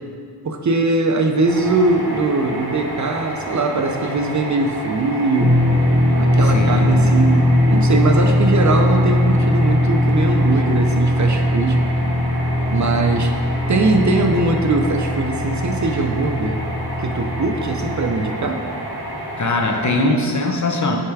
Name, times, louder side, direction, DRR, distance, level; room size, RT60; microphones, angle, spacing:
voice 1, 0.4-5.6 6.2-11.8 12.7-13.3 13.7-16.6 17.0-18.6, right 3 dB, 45° right, 5 dB, 0.5 m, -21 dB
sound 1, 1.4-19.9, right 1 dB, 65° right, 1.2 m, -30 dB
sound 2, 5.4-18.1, left 1 dB, 25° right, 0.8 m, -19 dB
voice 2, 6.4-7.1 19.4-21.0, left 2 dB, 45° left, 2 dB, 0.7 m, -21 dB
6.5 x 3.3 x 4.6 m, 2.2 s
wide cardioid pair, 60°, 40 cm